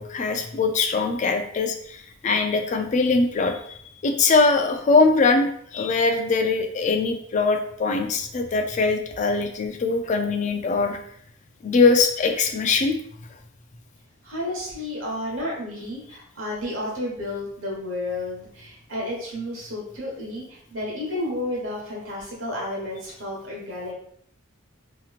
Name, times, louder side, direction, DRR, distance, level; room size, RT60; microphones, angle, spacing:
voice 1, 0.0-3.6 4.0-11.0 11.6-12.9, left 4 dB, 40° left, 5 dB, 0.3 m, -22 dB
voice 2, 14.2-23.9, left 1 dB, 80° right, -3 dB, 1.2 m, -31 dB
2.9 x 2.9 x 2.4 m, 0.65 s
head